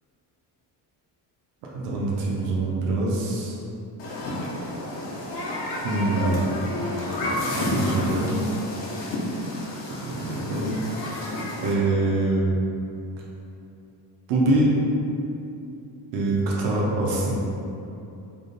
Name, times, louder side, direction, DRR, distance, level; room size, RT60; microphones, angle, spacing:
voice 1, 1.7-3.6 5.8-6.4 7.5-8.4 9.4-9.5 9.9-10.8 11.6-12.6 14.3-14.7 16.1-17.4, right 2 dB, 85° right, -4 dB, 0.7 m, -24 dB
Human group actions, 4.0-11.7, left 1 dB, 85° left, 0.8 m, -30 dB
3.4 x 2.1 x 3.8 m, 2.8 s
cardioid pair, 175°, 43 cm